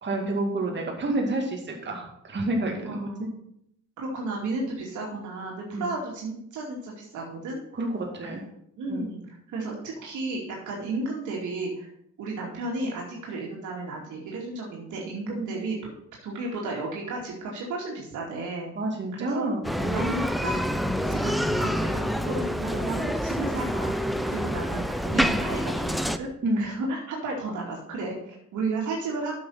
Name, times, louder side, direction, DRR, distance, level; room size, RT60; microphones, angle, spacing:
voice 1, 0.0-3.3 5.7-5.8 7.7-8.4 8.9-9.1 18.8-20.0 26.4-26.7, right 2 dB, 35° right, 0 dB, 2.1 m, -29 dB
voice 2, 2.8-3.3 4.0-7.6 8.2-8.3 8.8-11.9 12.2-15.8 16.2-18.7 19.2-19.5 19.9-20.6 21.0-26.3 26.6-29.4, right 2 dB, 80° right, -3 dB, 2.4 m, -33 dB
Bicycle, 19.6-26.2, equal, ahead, 0.5 m, -27 dB
8.6 x 6.4 x 5.6 m, 0.74 s
cardioid pair, 90°, 30 cm